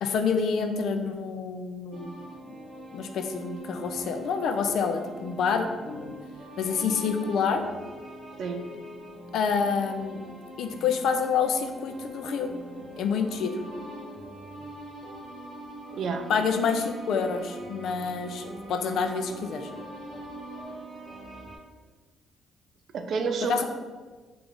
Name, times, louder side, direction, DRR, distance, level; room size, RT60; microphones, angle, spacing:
voice 1, 0.0-2.1 2.9-6.2 6.6-7.6 9.3-10.2 10.6-12.5 13.0-13.6 16.3-19.7 23.5-23.6, left 5 dB, 75° left, 6 dB, 0.3 m, -27 dB
sound 1, 1.9-21.6, right 1 dB, 45° right, 0.8 m, -43 dB
voice 2, 15.9-16.3 22.9-23.6, right 5 dB, 65° right, 5 dB, 0.4 m, -29 dB
3.3 x 2.4 x 3.7 m, 1.4 s
cardioid pair, 90°, 0 cm